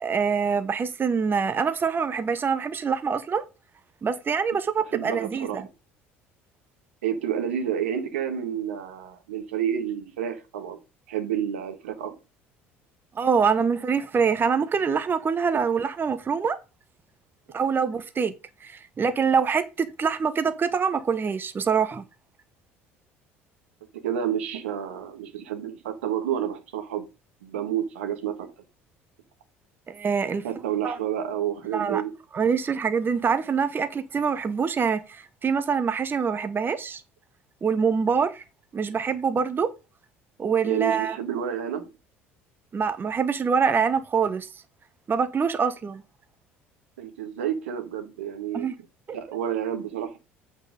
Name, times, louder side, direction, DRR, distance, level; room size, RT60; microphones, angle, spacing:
voice 1, 0.0-3.4 4.0-5.7 13.2-16.6 17.5-18.3 18.6-22.0 29.9-30.4 30.8-31.0 31.7-32.0 32.3-37.0 37.6-38.4 38.7-39.7 40.4-41.2 42.7-44.5 45.1-46.0 48.5-48.7 49.1-49.2, right 6 dB, 30° right, 0.9 m, -25 dB
voice 2, 4.9-5.6 7.0-10.8 11.1-12.1 24.0-27.1 27.4-28.5 30.4-32.1 40.6-41.9 47.0-48.7 49.1-50.2, right 9 dB, 80° right, 1.5 m, -29 dB
8.0 x 4.5 x 5.1 m
hypercardioid pair, 65°, 7 cm